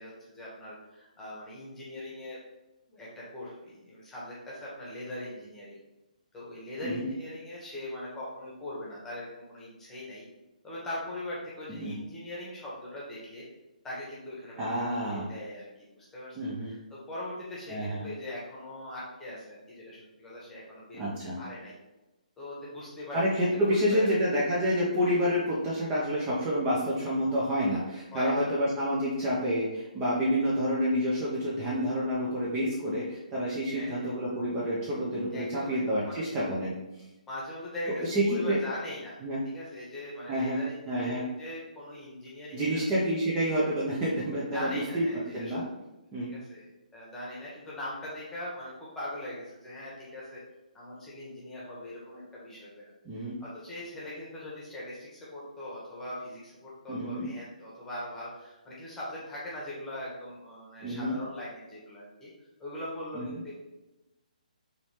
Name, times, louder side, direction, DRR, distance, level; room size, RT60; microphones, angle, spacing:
voice 1, 0.0-2.4 2.9-5.8 6.3-10.2 10.6-13.4 13.8-14.7 15.1-21.7 22.4-23.2 23.4-23.6 23.9-24.1 28.1-28.6 29.2-29.4 33.7-34.1 35.3-36.2 37.3-39.2 39.5-42.8 44.5-45.6 46.2-46.6 46.9-50.4 50.7-52.9 53.2-62.3 62.6-63.5, left 1 dB, 10° left, -6 dB, 1.2 m, -41 dB
voice 2, 14.6-15.3 16.4-16.8 17.7-18.0 20.9-21.4 23.1-36.7 38.0-38.6 39.2-39.4 40.3-41.2 42.5-45.1 45.3-45.6 46.1-46.3 53.0-53.4 56.9-57.3 60.8-61.2 63.1-63.4, equal, 20° right, -6 dB, 0.7 m, -28 dB
4.0 x 3.1 x 3.2 m, 1.0 s
figure-of-eight pair, 135°, 5 cm